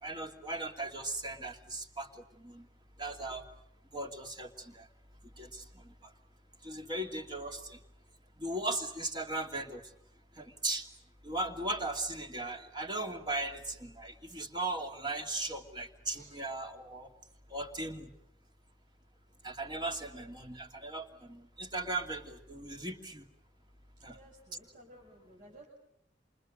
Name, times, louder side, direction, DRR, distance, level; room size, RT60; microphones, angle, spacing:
voice 1, 0.0-2.7 3.0-3.5 3.9-4.9 5.4-6.1 6.6-7.8 8.4-9.8 10.4-10.9 11.2-17.1 17.5-18.1 19.4-23.3 24.0-24.2, right 2 dB, 25° right, 4 dB, 2.7 m, -38 dB
voice 2, 24.1-25.6, right 1 dB, 45° right, -2 dB, 7.1 m, -56 dB
28.5 x 28.0 x 6.4 m, 0.73 s
head